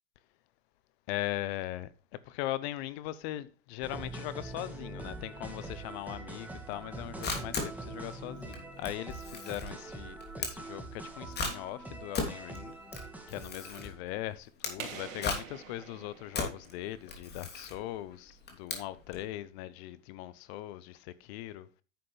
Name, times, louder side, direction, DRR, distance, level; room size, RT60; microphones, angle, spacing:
voice 1, 1.1-1.9 2.3-12.8 13.3-21.7, left 15 dB, 55° left, 0.8 m, -39 dB
sound 1, 3.8-14.0, right 2 dB, 5° right, 2.1 m, -44 dB
Camera, 6.8-19.3, left 3 dB, 25° left, 2.9 m, -39 dB
sound 2, 14.8-17.4, right 7 dB, 75° right, 3.0 m, -46 dB
10.5 x 7.6 x 3.3 m
hypercardioid pair, 115°, 39 cm